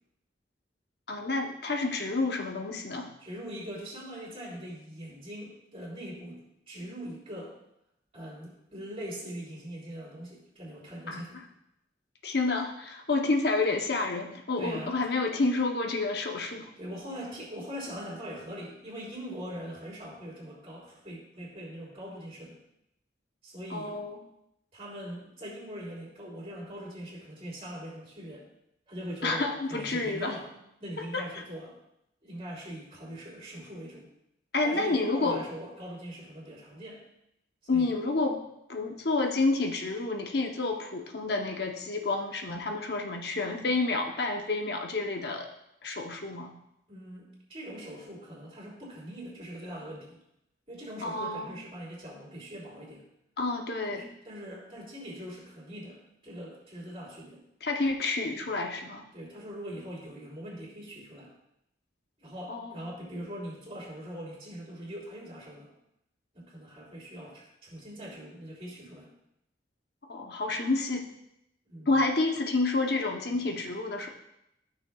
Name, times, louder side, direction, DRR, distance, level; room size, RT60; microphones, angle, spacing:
voice 1, 1.1-3.1 11.1-11.3 12.2-16.7 23.7-24.2 29.2-30.4 31.0-31.3 34.5-35.4 37.7-38.4 38.7-45.5 45.8-46.5 51.0-51.6 53.4-54.1 57.6-59.1 62.5-62.8 70.1-71.1 71.9-74.1, left 3 dB, 60° left, 3 dB, 0.9 m, -29 dB
voice 2, 3.2-7.5 8.1-11.4 14.6-15.0 16.8-22.6 23.4-24.0 24.7-28.5 28.9-30.5 30.8-31.7 32.2-34.1 34.6-37.0 37.7-37.9 46.9-50.2 50.7-53.0 53.8-57.4 59.1-61.3 62.2-65.7 66.3-69.1 71.7-72.0, equal, 35° right, -5 dB, 3.1 m, -42 dB
13.5 x 6.3 x 2.4 m, 0.80 s
head